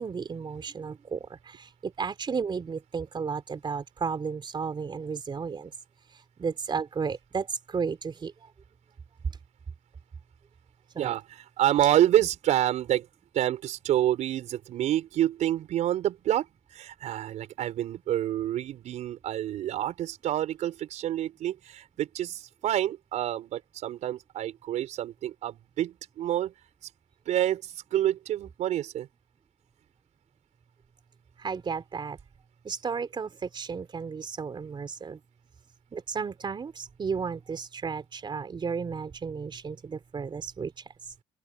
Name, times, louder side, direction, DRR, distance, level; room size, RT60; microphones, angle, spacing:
voice 1, 0.0-5.7 6.4-8.5 10.9-11.2 31.4-32.2 32.6-35.2 35.9-40.8, right 5 dB, 40° right, 3.9 m, -33 dB
voice 2, 11.0-13.1 13.3-16.5 16.7-26.5 27.3-29.1, right 12 dB, 70° right, 4.8 m, -28 dB
open air
supercardioid pair, 80°, 13 cm